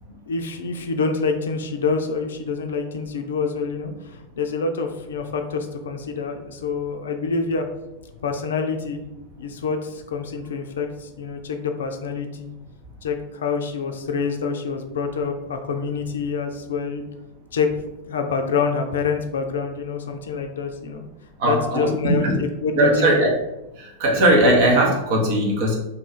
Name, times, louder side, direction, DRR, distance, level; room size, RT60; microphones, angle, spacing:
voice 1, 0.1-7.7 8.2-9.0 9.4-12.5 13.0-17.0 17.5-17.7 18.1-21.0 21.4-23.1, left 5 dB, 65° left, 6 dB, 0.4 m, -26 dB
voice 2, 21.4-22.4 22.7-23.4 23.7-25.8, right 1 dB, 50° right, 0 dB, 0.8 m, -19 dB
2.6 x 2.4 x 4.1 m, 0.96 s
figure-of-eight pair, 90°, 0 cm